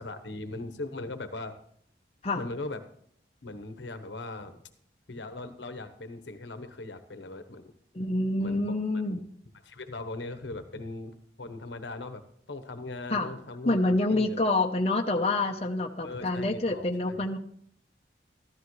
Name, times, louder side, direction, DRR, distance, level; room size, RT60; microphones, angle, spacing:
voice 1, 0.0-1.5 2.4-2.8 3.4-4.6 5.1-7.6 8.4-8.8 9.6-12.2 12.5-13.8 14.1-14.5 16.0-17.3, left 2 dB, 80° left, 10 dB, 1.1 m, -39 dB
voice 2, 7.9-9.2 13.1-13.3 13.6-17.4, left 2 dB, 35° left, 2 dB, 0.8 m, -27 dB
14.0 x 13.0 x 3.2 m, 0.63 s
head